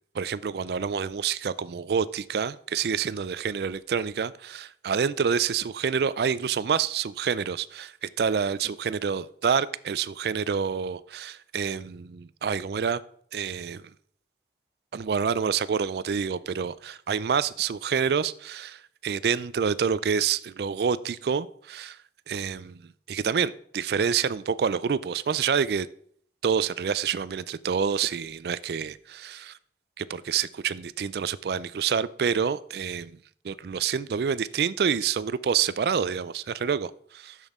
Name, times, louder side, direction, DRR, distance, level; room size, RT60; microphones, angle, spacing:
voice 1, 0.1-13.0 13.3-13.8 14.9-22.0 22.3-22.8 23.1-25.9 26.4-29.6 30.0-33.2 33.4-37.4, right 6 dB, 60° right, 0.4 m, -27 dB
10.5 x 7.3 x 3.6 m
head